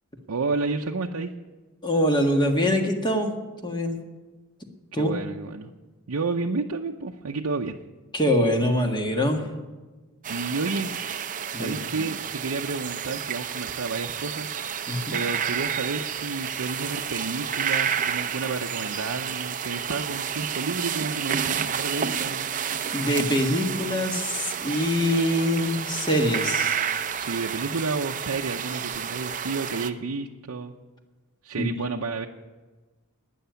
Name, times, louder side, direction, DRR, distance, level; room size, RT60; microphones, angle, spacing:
voice 1, 0.3-1.3 4.9-5.7 6.1-7.8 10.3-10.9 11.5-14.5 15.1-22.5 27.1-30.7 31.4-32.3, right 4 dB, 70° right, 1 dB, 0.7 m, -31 dB
voice 2, 1.8-3.3 3.6-4.0 4.9-5.1 8.1-9.5 11.5-12.1 14.9-15.2 22.9-26.8 31.6-31.8, equal, 20° left, 3 dB, 1.6 m, -24 dB
sound 1, 10.2-29.9, right 7 dB, 35° right, 0.6 m, -30 dB
12.5 x 9.3 x 9.2 m, 1.3 s
head